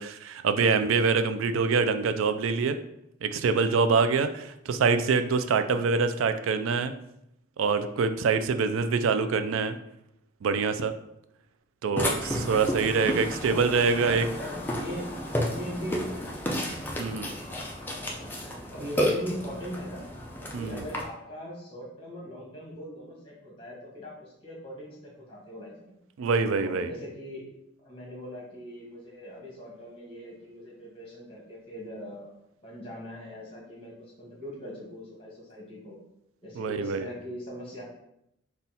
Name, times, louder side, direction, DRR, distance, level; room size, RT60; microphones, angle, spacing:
voice 1, 0.0-2.8 3.2-6.9 7.6-9.8 10.4-10.9 11.8-14.2 17.0-17.3 20.5-20.8 26.2-26.9 36.6-37.1, right 5 dB, 80° right, 10 dB, 0.3 m, -25 dB
voice 2, 5.5-5.9 14.0-16.1 18.1-18.4 18.7-20.0 20.4-25.9 26.5-27.5 27.8-32.3 32.6-36.0 36.4-37.8, equal, 25° left, -5 dB, 1.6 m, -40 dB
Burping eructation, 12.0-21.0, equal, 10° left, 0.5 m, -32 dB
4.1 x 2.3 x 4.0 m, 0.80 s
head